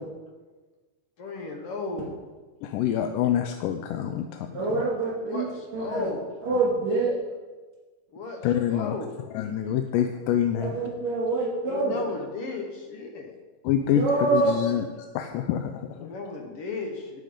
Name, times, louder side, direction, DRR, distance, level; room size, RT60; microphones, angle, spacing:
voice 1, 1.2-2.1 5.2-6.3 8.1-9.2 11.6-13.3 15.9-17.2, left 3 dB, 60° left, 2 dB, 1.6 m, -35 dB
voice 2, 2.6-4.5 8.4-9.0 9.4-10.7 13.7-14.0 14.3-14.8 15.2-16.1, left 10 dB, 90° left, 6 dB, 2.2 m, -26 dB
voice 3, 4.5-6.1 6.4-7.1 10.6-12.0 13.8-14.6, right 3 dB, 60° right, -6 dB, 3.7 m, -26 dB
9.9 x 7.8 x 5.0 m, 1.3 s
omnidirectional pair, 3.7 m